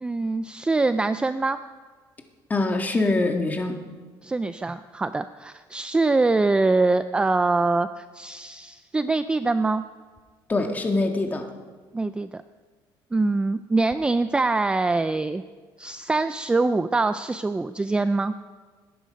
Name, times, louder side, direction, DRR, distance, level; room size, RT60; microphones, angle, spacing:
voice 1, 0.0-1.6 4.2-9.8 11.9-12.4 13.1-15.4 15.8-18.3, right 3 dB, 10° right, 12 dB, 0.4 m, -24 dB
voice 2, 2.5-3.7 10.5-11.4, left 2 dB, 20° left, 3 dB, 1.7 m, -23 dB
18.5 x 10.5 x 5.3 m, 1.5 s
cardioid pair, 130°, 9 cm